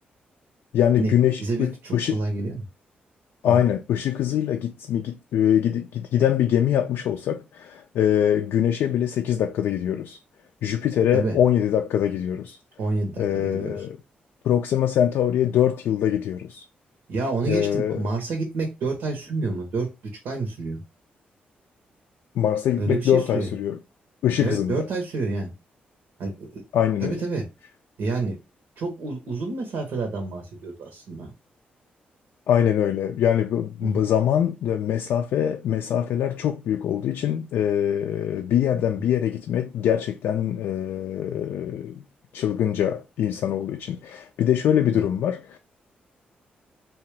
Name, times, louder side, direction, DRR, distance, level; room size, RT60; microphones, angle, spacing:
voice 1, 0.7-2.2 3.4-10.2 10.6-12.6 13.2-14.0 14.4-16.6 17.5-18.0 22.4-23.8 24.2-24.9 26.7-27.2 32.5-42.0 42.3-45.6, left 10 dB, 85° left, 0.3 m, -23 dB
voice 2, 1.4-2.6 3.4-3.6 11.1-11.4 12.8-13.8 17.1-19.9 20.2-20.8 22.8-23.5 24.4-25.5 26.2-26.6 27.0-27.4 28.0-28.4 28.8-31.3 33.8-34.0 44.9-45.0, right 3 dB, 85° right, 0.8 m, -28 dB
2.9 x 2.3 x 3.2 m
cardioid pair, 75°, 4 cm